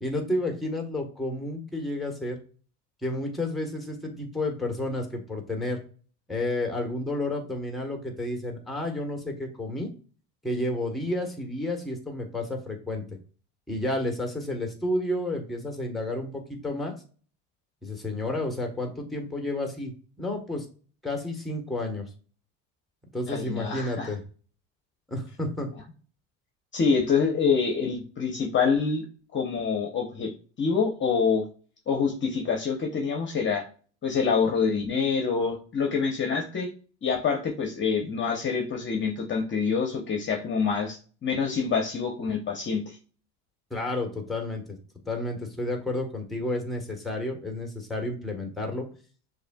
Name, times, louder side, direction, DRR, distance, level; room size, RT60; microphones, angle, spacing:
voice 1, 0.0-2.4 3.0-5.8 6.3-9.9 10.4-13.2 13.7-16.9 17.8-19.9 20.2-20.6 21.0-22.1 23.1-24.2 25.1-25.7 43.7-44.8 45.1-48.9, left 1 dB, ahead, 3 dB, 1.2 m, -31 dB
voice 2, 23.3-24.1 26.7-29.1 29.3-30.3 30.6-31.5 31.9-33.7 34.0-36.7 37.0-43.0, left 5 dB, 30° left, 2 dB, 0.9 m, -26 dB
6.5 x 2.8 x 2.3 m, 0.40 s
supercardioid pair, 105°, 36 cm